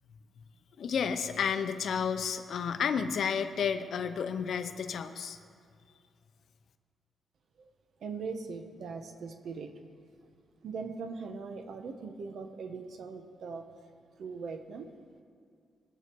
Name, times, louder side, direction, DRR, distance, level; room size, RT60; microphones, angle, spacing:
voice 1, 0.8-5.4, left 7 dB, 60° left, 9 dB, 0.8 m, -31 dB
voice 2, 8.0-9.7 10.2-10.3 10.6-13.7 14.2-14.9, right 5 dB, 60° right, 6 dB, 1.0 m, -40 dB
21.5 x 8.1 x 4.7 m, 2.3 s
wide cardioid pair, 150°, 0 cm